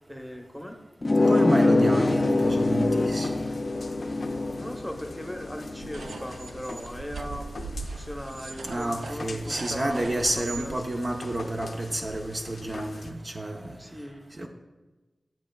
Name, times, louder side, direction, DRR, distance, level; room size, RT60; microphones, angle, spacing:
voice 1, 0.1-0.8 4.5-10.7 13.8-14.5, equal, ahead, 3 dB, 1.0 m, -39 dB
sound 1, 1.0-6.3, left 2 dB, 40° left, 0.4 m, -24 dB
voice 2, 1.3-3.3 8.6-13.8 14.4-14.5, right 1 dB, 45° right, 2 dB, 0.6 m, -30 dB
sound 2, 1.8-13.1, left 2 dB, 75° left, 0.7 m, -43 dB
sound 3, 5.8-10.7, right 4 dB, 90° right, 0.3 m, -40 dB
11.5 x 7.5 x 2.3 m, 1.2 s
wide cardioid pair, 65°, 0 cm